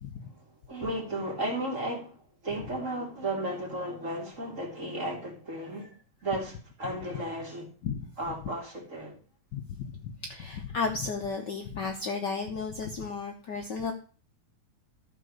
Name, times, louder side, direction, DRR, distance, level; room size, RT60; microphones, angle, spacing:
voice 1, 0.3-5.9 6.2-7.6 8.2-9.2, right 1 dB, 25° right, 2.9 m, -34 dB
voice 2, 9.5-13.9, left 4 dB, 75° left, 1.0 m, -34 dB
13.5 x 4.7 x 6.5 m
omnidirectional pair, 3.4 m